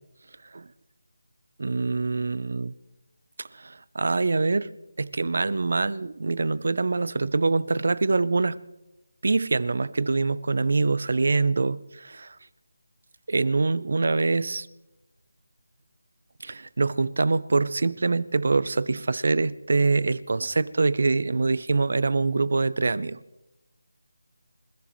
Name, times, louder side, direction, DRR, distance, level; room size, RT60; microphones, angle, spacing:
voice 1, 1.6-2.7 3.6-4.7 5.0-8.6 9.2-12.3 13.3-14.7 16.4-23.2, right 3 dB, 45° right, 19 dB, 0.6 m, -24 dB
28.0 x 15.5 x 3.1 m, 0.95 s
figure-of-eight pair, 180°, 0 cm